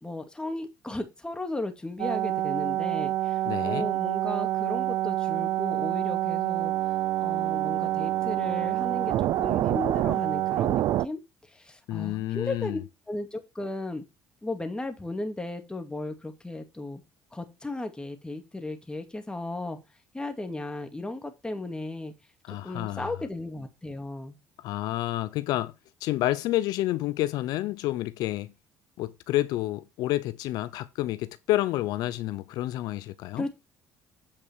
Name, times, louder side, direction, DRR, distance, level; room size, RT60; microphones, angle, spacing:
voice 1, 0.0-6.7 7.2-12.8 13.1-14.0 14.4-17.0 17.3-19.8 20.1-22.1 22.5-24.4 33.4-33.5, left 2 dB, 10° left, 2.3 m, -35 dB
sound 1, 2.0-11.1, right 14 dB, 70° right, 0.5 m, -27 dB
voice 2, 3.5-3.9 11.9-12.8 22.5-23.1 24.6-25.7 26.0-28.5 29.0-33.5, left 15 dB, 75° left, 0.5 m, -29 dB
8.7 x 5.5 x 4.6 m
supercardioid pair, 75°, 7 cm